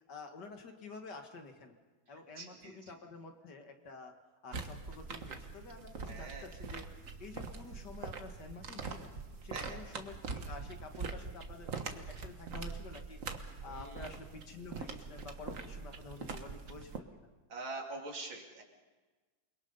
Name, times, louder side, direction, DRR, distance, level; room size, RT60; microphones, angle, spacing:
voice 1, 0.0-1.7 2.1-4.1 4.4-6.9 7.2-9.1 9.4-13.2 13.6-17.3, left 4 dB, 60° left, 5 dB, 2.3 m, -49 dB
voice 2, 2.4-2.8 6.1-6.5 9.5-9.8 13.7-14.0 17.5-18.6, right 3 dB, 80° right, 0 dB, 3.5 m, -44 dB
sound 1, 4.5-17.0, right 4 dB, 45° right, 1.6 m, -43 dB
28.5 x 21.5 x 5.5 m, 1.3 s
omnidirectional pair, 2.1 m